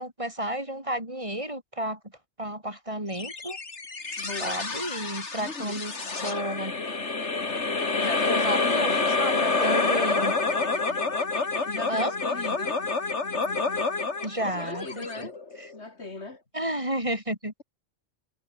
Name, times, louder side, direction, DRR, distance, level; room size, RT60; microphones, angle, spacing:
voice 1, 0.0-2.0 2.4-3.6 4.4-5.9 6.2-6.7 8.3-10.3 11.9-12.1 14.2-15.3 15.6-15.7 16.5-17.5, right 1 dB, 30° right, 4.8 m, -31 dB
sound 1, 3.2-15.8, left 3 dB, 90° left, 2.9 m, -28 dB
voice 2, 4.2-4.7 5.4-5.8 8.0-9.1 11.6-12.8 14.4-15.3 15.7-16.4, left 3 dB, 75° left, 3.3 m, -37 dB
omnidirectional pair, 1.1 m